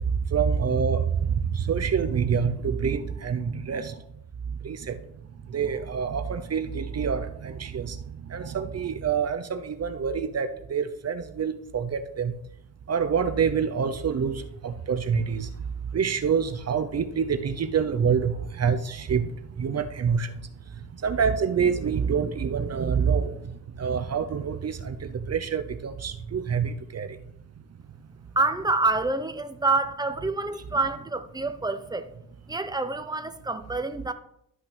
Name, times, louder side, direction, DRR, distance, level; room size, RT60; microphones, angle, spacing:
voice 1, 0.3-4.0 4.6-5.0 5.5-12.3 12.9-15.5 15.9-19.3 19.6-20.3 21.0-23.3 23.8-27.2, right 6 dB, 45° right, 0.7 m, -26 dB
voice 2, 28.4-32.1 32.5-34.1, right 3 dB, 10° right, 0.9 m, -27 dB
12.5 x 5.8 x 3.4 m
cardioid pair, 65°, 37 cm